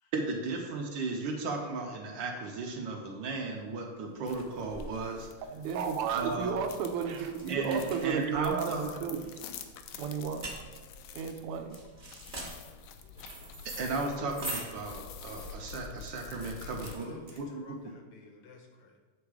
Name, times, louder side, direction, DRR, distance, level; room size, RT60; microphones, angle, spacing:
voice 1, 0.1-5.3 6.1-6.5 7.5-8.8 13.8-17.6, right 3 dB, 65° right, 2 dB, 1.4 m, -35 dB
sound 1, 3.4-17.8, right 2 dB, 30° right, 1.0 m, -45 dB
sound 2, 4.3-16.9, left 6 dB, 85° left, 1.5 m, -48 dB
voice 2, 5.5-9.2 10.0-10.5 11.1-11.8, right 7 dB, 85° right, 6 dB, 1.6 m, -33 dB
voice 3, 16.6-19.0, left 4 dB, 70° left, 3 dB, 1.5 m, -52 dB
7.9 x 3.5 x 4.9 m, 1.3 s
omnidirectional pair, 2.4 m